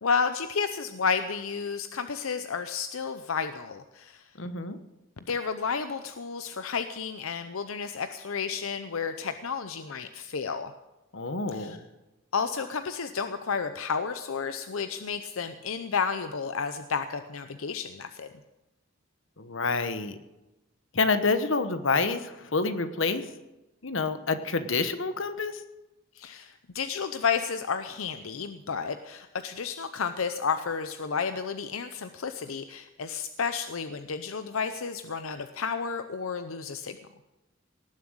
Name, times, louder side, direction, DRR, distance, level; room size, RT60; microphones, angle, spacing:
voice 1, 0.0-4.2 5.3-10.7 11.5-11.8 12.3-18.3 26.2-37.0, left 5 dB, 80° left, 9 dB, 0.7 m, -31 dB
voice 2, 4.4-4.8 11.1-11.8 19.4-20.2 20.9-23.2 23.8-25.6, left 4 dB, 65° left, 10 dB, 1.1 m, -28 dB
18.5 x 7.6 x 8.9 m, 1.0 s
head